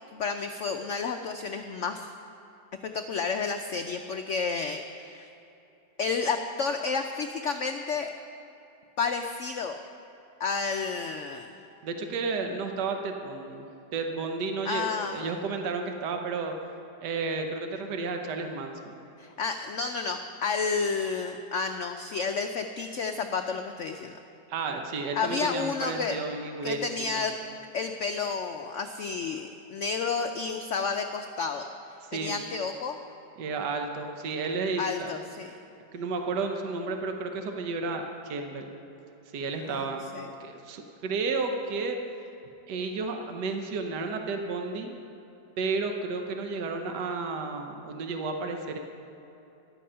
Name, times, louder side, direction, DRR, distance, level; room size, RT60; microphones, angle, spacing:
voice 1, 0.1-2.1 2.8-5.3 6.0-8.1 9.0-9.8 10.4-11.5 14.7-15.3 19.2-24.2 25.2-26.2 26.6-27.3 27.7-31.7 32.1-33.0 34.8-35.5 39.7-40.3, left 5 dB, 80° left, 6 dB, 0.6 m, -31 dB
voice 2, 11.8-16.5 17.0-18.9 24.5-26.9 27.1-27.3 32.0-32.4 33.4-35.2 35.9-38.7 39.3-40.1 40.4-42.0 42.7-45.0 45.6-48.8, right 4 dB, 70° right, 4 dB, 1.5 m, -32 dB
13.5 x 11.5 x 5.6 m, 3.0 s
omnidirectional pair, 2.0 m